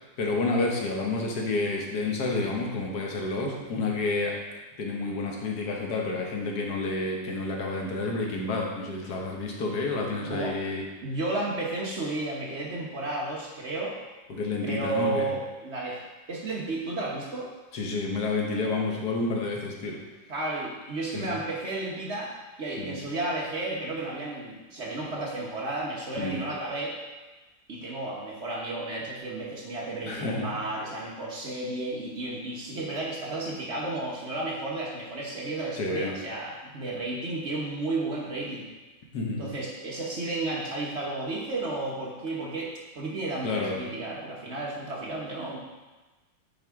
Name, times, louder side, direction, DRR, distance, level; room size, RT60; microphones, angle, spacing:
voice 1, 0.2-4.4 4.8-10.8 14.3-15.3 17.7-20.0 21.1-21.4 22.8-22.9 26.2-26.4 30.0-30.6 35.7-36.2 39.1-39.5 43.4-43.8, left 3 dB, 75° left, 0 dB, 1.6 m, -29 dB
voice 2, 10.2-10.6 11.0-14.0 14.6-16.0 16.3-17.5 20.3-27.0 27.7-38.7 39.4-45.6, right 2 dB, 45° right, -3 dB, 1.1 m, -33 dB
7.8 x 4.7 x 3.6 m, 1.2 s
omnidirectional pair, 1.8 m